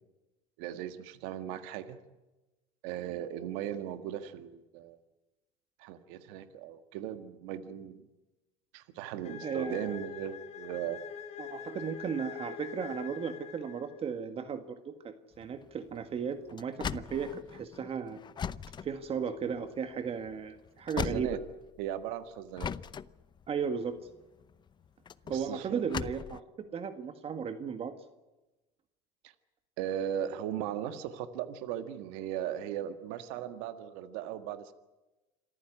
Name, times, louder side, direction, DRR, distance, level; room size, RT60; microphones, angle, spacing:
voice 1, 0.6-2.0 2.8-5.0 5.8-8.0 8.7-11.0 21.0-21.4 21.8-22.7 25.2-25.9 29.2-29.3 29.8-34.7, right 10 dB, 75° right, 10 dB, 1.7 m, -38 dB
sound 1, 9.2-14.1, left 8 dB, 45° left, 3.8 m, -44 dB
voice 2, 9.4-9.9 11.4-18.2 18.8-21.4 23.5-24.0 25.3-26.4 26.7-27.9, right 6 dB, 35° right, 9 dB, 1.8 m, -35 dB
sound 2, 15.3-22.0 22.6-26.4, left 7 dB, 30° left, 0.7 m, -40 dB
26.5 x 14.5 x 9.9 m, 1.1 s
supercardioid pair, 105°, 16 cm